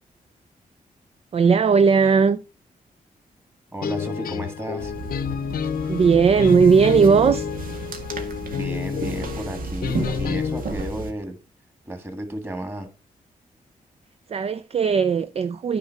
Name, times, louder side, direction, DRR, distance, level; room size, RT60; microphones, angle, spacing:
voice 1, 1.3-2.4 5.9-7.5 14.3-15.8, right 5 dB, 45° right, 0.4 m, -17 dB
voice 2, 3.7-4.9 8.5-11.4 11.9-12.9, right 1 dB, 15° right, 2.1 m, -33 dB
sound 1, 3.8-10.6, left 7 dB, 90° left, 0.8 m, -29 dB
sound 2, 4.8-11.1, right 2 dB, 75° right, 1.8 m, -33 dB
9.5 x 4.4 x 5.9 m
cardioid pair, 100°, 15 cm